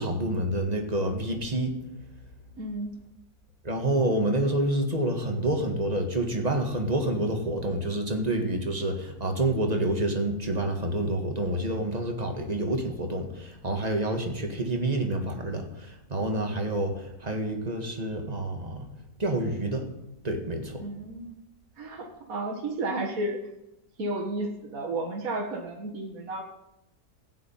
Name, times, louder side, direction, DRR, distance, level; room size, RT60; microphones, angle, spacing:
voice 1, 0.0-1.8 3.6-18.9 19.2-19.9 20.2-20.9, right 1 dB, 25° right, 4 dB, 1.9 m, -28 dB
voice 2, 2.6-3.0 20.8-21.4 21.8-23.4 24.0-26.4, right 2 dB, 60° right, 0 dB, 2.0 m, -32 dB
15.5 x 6.1 x 9.0 m, 0.89 s
omnidirectional pair, 1.6 m